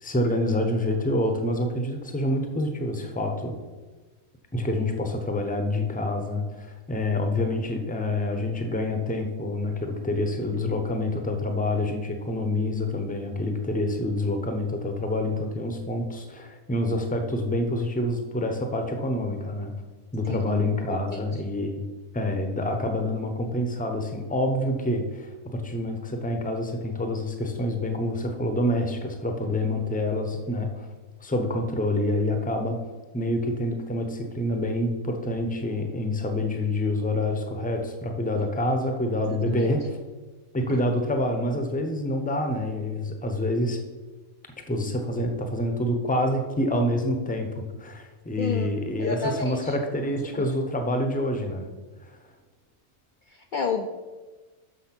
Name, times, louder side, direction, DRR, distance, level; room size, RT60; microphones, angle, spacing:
voice 1, 0.0-3.6 4.5-19.7 20.1-21.8 22.1-30.9 31.2-32.8 33.1-40.0 40.5-43.8 44.7-51.7 52.0-52.1, left 1 dB, 10° left, 5 dB, 0.5 m, -27 dB
voice 2, 20.3-21.3 39.3-39.8 40.7-40.8 48.4-48.7 49.0-49.7 50.4-50.5 53.3-53.9, left 5 dB, 70° left, 4 dB, 0.4 m, -31 dB
6.5 x 6.3 x 5.9 m, 1.3 s
omnidirectional pair, 1.5 m